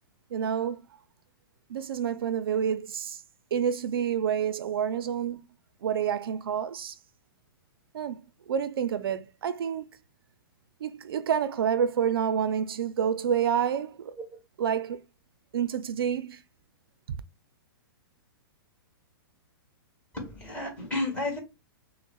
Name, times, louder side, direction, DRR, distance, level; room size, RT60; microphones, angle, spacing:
voice 1, 0.3-0.8 1.7-3.2 3.5-5.5 5.8-7.0 7.9-8.2 8.5-9.9 10.8-14.1 14.6-15.0 15.5-16.4, right 8 dB, 80° right, 0.5 m, -28 dB
voice 2, 20.1-21.4, left 2 dB, 10° left, 1.6 m, -32 dB
6.1 x 2.1 x 2.3 m
hypercardioid pair, 175°, 12 cm